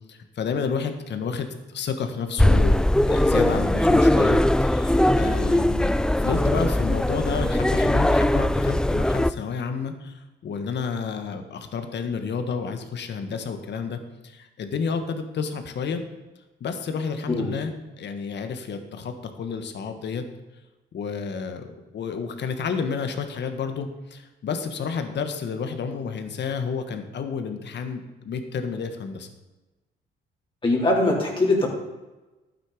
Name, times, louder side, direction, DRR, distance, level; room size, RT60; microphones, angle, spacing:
voice 1, 0.1-2.8 3.0-16.0 16.6-20.2 20.9-29.3, left 6 dB, 60° left, 7 dB, 1.6 m, -30 dB
sound 1, 2.4-9.3, left 1 dB, 5° left, 0.3 m, -20 dB
voice 2, 30.6-31.7, left 2 dB, 25° left, -3 dB, 3.6 m, -21 dB
12.0 x 9.1 x 5.1 m, 1.1 s
cardioid pair, 90°, 20 cm